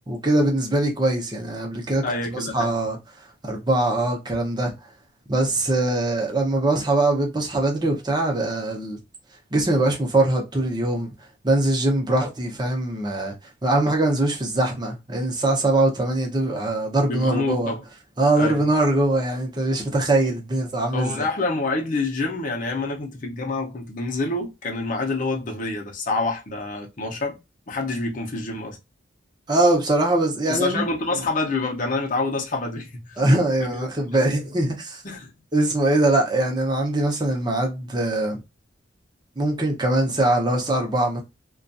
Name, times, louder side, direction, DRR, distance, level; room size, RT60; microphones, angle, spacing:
voice 1, 0.0-2.0 2.3-3.0 3.4-4.7 5.3-9.0 9.5-11.1 11.4-13.3 13.6-17.7 18.2-21.2 29.5-30.8 31.1-31.2 33.2-35.0 35.5-38.4 39.4-41.2, right 2 dB, 20° right, 0.7 m, -22 dB
voice 2, 2.0-2.7 17.1-17.8 18.3-18.6 20.9-27.4 27.7-28.8 30.5-33.2 33.6-33.8 35.0-35.3, left 3 dB, 45° left, 0.7 m, -27 dB
2.5 x 2.3 x 2.5 m
head